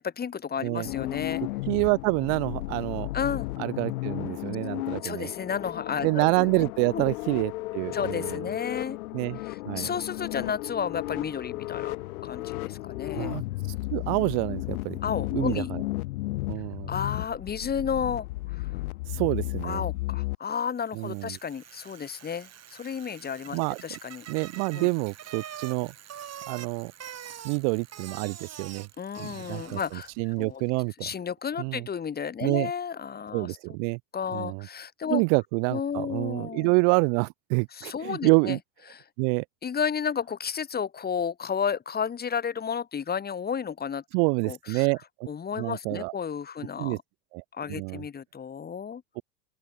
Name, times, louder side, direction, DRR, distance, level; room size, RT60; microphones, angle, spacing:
voice 1, 0.0-1.4 3.1-3.5 5.0-6.5 6.9-7.0 7.9-9.0 9.4-12.0 12.2-13.4 15.0-15.8 16.9-18.7 19.6-24.3 24.7-24.9 29.0-30.6 31.0-33.6 34.1-35.2 35.7-36.7 37.7-38.6 38.9-39.0 39.6-44.0 44.4-44.9 45.3-47.0 47.5-49.0, left 7 dB, 20° left, 1.4 m, -32 dB
sound 1, 0.8-20.4, left 20 dB, 70° left, 2.6 m, -34 dB
voice 2, 1.7-3.1 3.6-5.3 6.0-8.5 9.1-9.4 9.7-9.9 13.1-13.4 13.9-15.0 15.3-15.8 16.5-16.9 19.1-19.9 20.9-21.4 23.5-24.0 24.3-25.9 26.5-26.9 27.4-28.9 29.2-31.1 31.6-31.9 32.4-32.7 33.3-34.0 34.3-34.7 35.1-38.6 39.2-39.4 44.1-45.3 45.6-46.1 46.8-47.0 47.3-47.4 47.7-48.0 49.2-49.3, right 40 dB or more, 50° right, 0.5 m, -27 dB
Bicycle, 20.8-30.2, right 9 dB, 35° right, 7.0 m, -45 dB
open air
hypercardioid pair, 95°, 46 cm